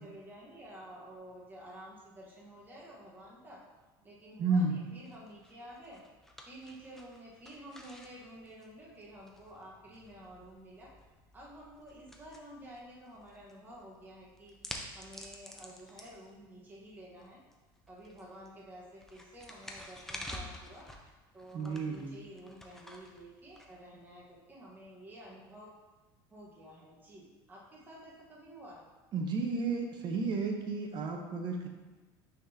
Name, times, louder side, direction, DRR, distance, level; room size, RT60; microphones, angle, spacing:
voice 1, 0.0-3.6 4.0-6.0 6.5-10.9 11.3-14.6 14.9-17.4 17.9-20.9 21.3-25.7 26.3-28.9, right 1 dB, 15° right, -5 dB, 1.2 m, -51 dB
voice 2, 4.4-4.8 21.5-22.2 29.1-31.7, right 3 dB, 40° right, 3 dB, 0.8 m, -32 dB
sound 1, 5.1-24.3, left 1 dB, 5° left, 0.6 m, -51 dB
9.1 x 3.7 x 2.8 m, 1.2 s
supercardioid pair, 125°, 12 cm